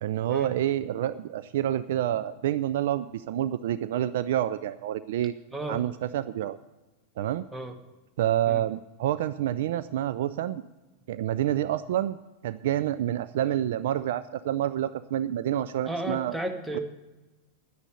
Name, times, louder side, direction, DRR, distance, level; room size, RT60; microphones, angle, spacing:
voice 1, 0.0-5.3 5.7-6.6 7.2-7.4 8.2-10.6 11.1-12.2 12.4-16.3, right 12 dB, 55° right, 14 dB, 0.3 m, -28 dB
voice 2, 15.9-16.8, right 1 dB, 5° right, 6 dB, 1.3 m, -33 dB
10.5 x 9.7 x 6.7 m, 1.1 s
figure-of-eight pair, 90°, 0 cm